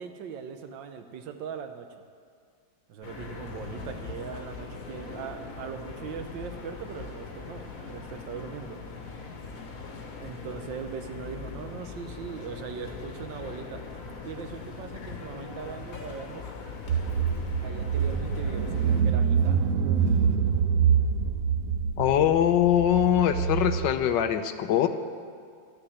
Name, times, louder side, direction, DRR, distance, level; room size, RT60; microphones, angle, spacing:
voice 1, 0.0-2.0 2.9-8.8 10.1-13.8 14.2-16.5 17.6-19.7, right 6 dB, 75° right, 7 dB, 1.5 m, -40 dB
sound 1, 3.0-19.0, left 4 dB, 50° left, 1.6 m, -41 dB
Car / Engine, 16.9-23.9, right 7 dB, 60° right, 0.9 m, -25 dB
voice 2, 22.0-24.9, left 10 dB, 75° left, 10 dB, 1.3 m, -22 dB
12.0 x 6.9 x 9.8 m, 2.2 s
omnidirectional pair, 2.0 m